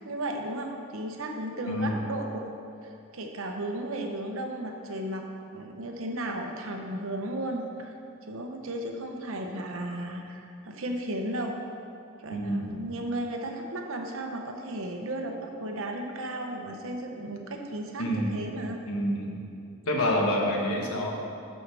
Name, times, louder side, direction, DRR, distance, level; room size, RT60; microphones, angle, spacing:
voice 1, 0.0-2.4 2.8-7.9 8.2-11.5 12.2-18.8, right 1 dB, 75° right, 3 dB, 0.9 m, -34 dB
voice 2, 1.7-2.0 12.3-12.8 18.0-18.5 18.9-19.4 19.8-21.1, left 1 dB, 90° left, -1 dB, 1.3 m, -27 dB
13.0 x 5.4 x 3.4 m, 2.6 s
head